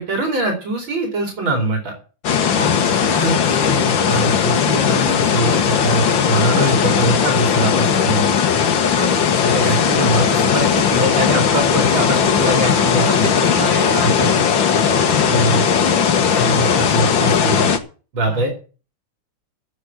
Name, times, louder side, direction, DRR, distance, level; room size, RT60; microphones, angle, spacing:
voice 1, 0.0-2.0 3.1-8.3 9.5-13.4 14.0-14.3 15.3-15.7 16.3-17.7 18.1-18.5, right 1 dB, 70° right, 2 dB, 3.7 m, -22 dB
sound 1, 2.2-17.8, left 7 dB, 70° left, 2.0 m, -17 dB
voice 2, 2.6-2.9 8.9-9.3 12.6-15.3 15.9-16.1 18.3-18.4, right 1 dB, 45° right, 1 dB, 4.4 m, -29 dB
15.0 x 5.3 x 9.2 m, 0.36 s
omnidirectional pair, 2.2 m